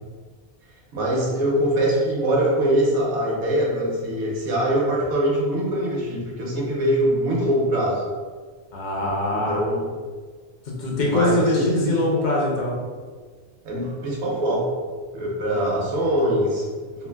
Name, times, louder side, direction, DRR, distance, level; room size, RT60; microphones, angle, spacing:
voice 1, 0.9-8.0 9.3-9.8 11.0-12.0 13.6-14.7 15.1-17.1, right 1 dB, 70° right, -3 dB, 1.0 m, -23 dB
voice 2, 8.7-9.6 10.7-12.8 15.5-15.8, left 1 dB, 50° left, -3 dB, 0.6 m, -23 dB
3.1 x 2.4 x 2.3 m, 1.5 s
omnidirectional pair, 1.3 m